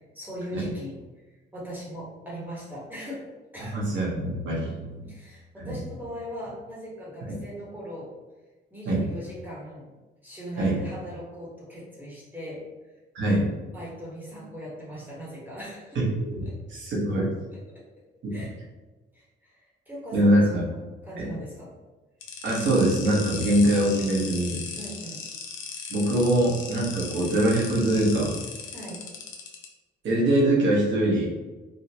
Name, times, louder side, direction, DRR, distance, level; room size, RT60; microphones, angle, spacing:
voice 1, 0.1-1.0 1.5-3.2 3.5-3.8 4.6-4.8 5.1-8.1 8.7-9.9 10.2-12.7 13.7-16.0 16.4-16.5 17.7-18.0 18.3-18.5 19.1-21.7 24.8-25.2 28.7-29.1, equal, 10° right, -7 dB, 1.2 m, -39 dB
voice 2, 3.7-5.0 5.6-5.8 7.3-7.4 8.9-9.0 10.6-10.8 13.1-13.5 15.9-17.3 18.2-18.3 20.1-20.6 21.2-21.3 22.4-24.6 25.9-28.3 30.0-31.3, right 1 dB, 65° right, -4 dB, 1.3 m, -23 dB
sound 1, 22.2-29.6, left 5 dB, 80° left, 0.6 m, -37 dB
3.7 x 2.4 x 2.9 m, 1.2 s
cardioid pair, 90°, 20 cm